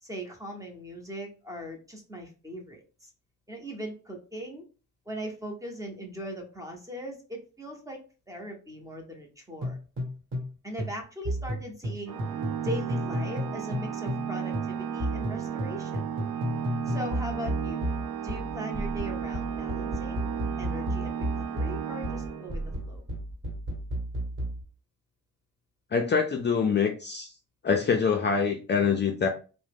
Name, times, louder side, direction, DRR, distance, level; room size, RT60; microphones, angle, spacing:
voice 1, 0.0-3.1 3.5-4.6 5.1-8.0 8.3-9.8 10.6-12.2 12.6-16.0 16.9-17.9 18.2-20.3 20.6-23.0, equal, 10° right, 1 dB, 0.8 m, -39 dB
sound 1, 9.6-10.5 10.8-14.3 14.5-24.6, equal, 40° right, 1.2 m, -33 dB
Organ, 12.1-22.9, right 8 dB, 70° right, 0.6 m, -34 dB
voice 2, 25.9-27.3 27.6-29.3, left 6 dB, 35° left, 2 dB, 0.4 m, -25 dB
2.8 x 2.1 x 3.4 m, 0.35 s
cardioid pair, 100°, 32 cm